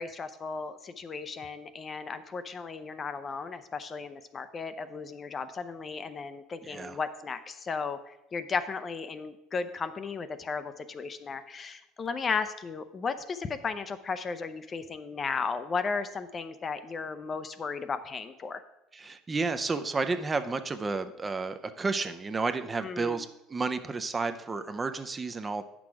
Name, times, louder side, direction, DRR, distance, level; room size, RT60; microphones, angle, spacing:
voice 1, 0.0-18.6 22.8-23.3, left 5 dB, 30° left, 11 dB, 0.5 m, -35 dB
voice 2, 6.6-7.0 18.9-25.6, right 4 dB, 20° right, 10 dB, 0.5 m, -31 dB
8.7 x 6.1 x 4.7 m, 0.90 s
cardioid pair, 125°, 0 cm